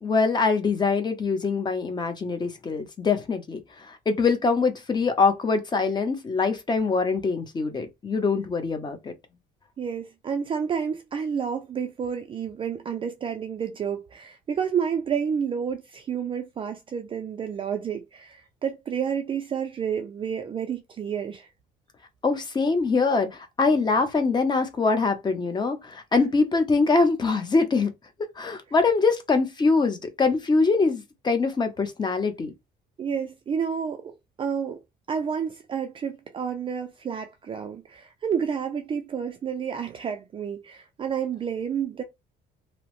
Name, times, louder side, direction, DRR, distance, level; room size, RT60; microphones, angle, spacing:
voice 1, 0.0-3.6 3.9-9.1 22.2-27.9 28.4-32.5, left 4 dB, 25° left, 0.7 m, -23 dB
voice 2, 9.8-21.5 26.1-26.2 33.0-34.8 35.1-42.0, right 7 dB, 30° right, 0.4 m, -30 dB
2.8 x 2.0 x 2.9 m
cardioid pair, 110°, 17 cm